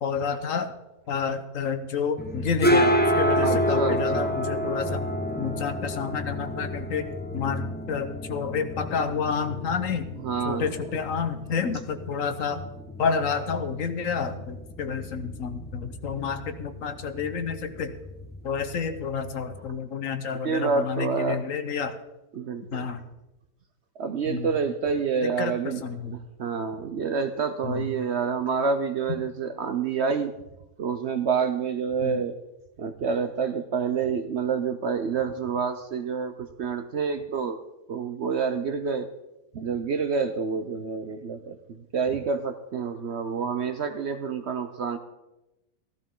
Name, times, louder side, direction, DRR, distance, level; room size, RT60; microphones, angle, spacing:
voice 1, 0.0-0.7 1.1-5.1 5.4-10.1 10.4-12.6 13.0-18.0 18.4-22.0 22.7-23.0 24.3-24.6 25.2-26.2 27.6-27.9 32.0-32.2, left 6 dB, 60° left, 9 dB, 1.3 m, -29 dB
sound 1, 2.2-19.7, equal, 10° left, 0.9 m, -30 dB
voice 2, 3.4-4.4 10.2-10.7 20.4-21.4 22.3-22.9 24.0-25.8 26.1-30.3 30.8-32.3 32.8-37.6 37.9-39.1 39.5-45.0, right 5 dB, 55° right, 9 dB, 0.8 m, -28 dB
15.0 x 14.5 x 3.8 m, 0.98 s
omnidirectional pair, 1.6 m